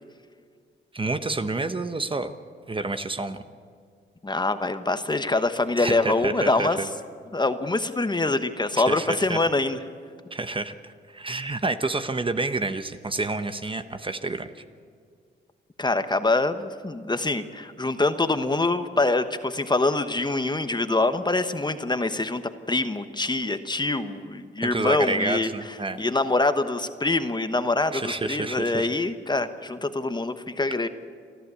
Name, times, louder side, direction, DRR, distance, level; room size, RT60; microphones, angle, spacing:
voice 1, 0.9-2.3 2.7-3.4 5.8-6.9 8.8-9.4 10.3-14.6 24.6-26.0 27.9-28.9, right 2 dB, 25° right, 9 dB, 1.0 m, -29 dB
voice 2, 4.2-6.8 7.3-9.8 15.8-22.4 22.7-30.9, left 2 dB, 20° left, 10 dB, 1.1 m, -25 dB
29.0 x 12.0 x 8.3 m, 2.2 s
cardioid pair, 85°, 20 cm